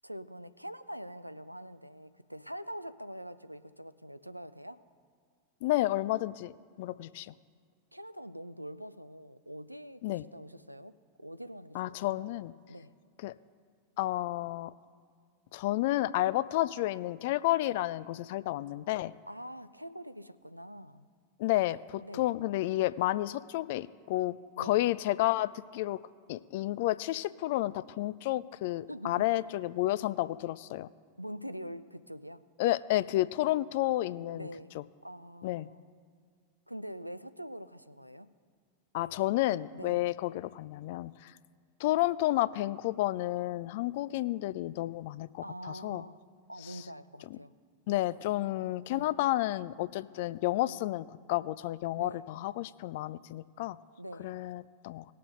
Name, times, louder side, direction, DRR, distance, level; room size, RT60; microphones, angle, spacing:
voice 1, 0.0-4.8 7.9-12.3 12.7-12.9 19.3-21.1 22.0-22.3 24.6-24.8 28.9-29.3 31.2-32.4 34.3-34.7 35.0-35.8 36.7-38.3 39.7-40.0 45.4-46.2 46.5-47.5 48.9-49.1 50.7-50.8 52.0-52.3 54.0-54.4, equal, 90° right, 13 dB, 0.4 m, -44 dB
voice 2, 5.6-6.5 6.8-7.3 10.0-10.2 11.7-12.5 13.2-13.3 14.0-14.7 15.5-19.1 21.4-26.0 26.3-30.9 32.6-34.5 34.7-34.8 35.4-35.7 38.9-41.3 41.8-46.0 46.7-46.8 47.9-53.8 54.2-55.1, left 16 dB, 50° left, 17 dB, 0.3 m, -31 dB
19.0 x 6.7 x 3.9 m, 2.1 s
figure-of-eight pair, 90°, 0 cm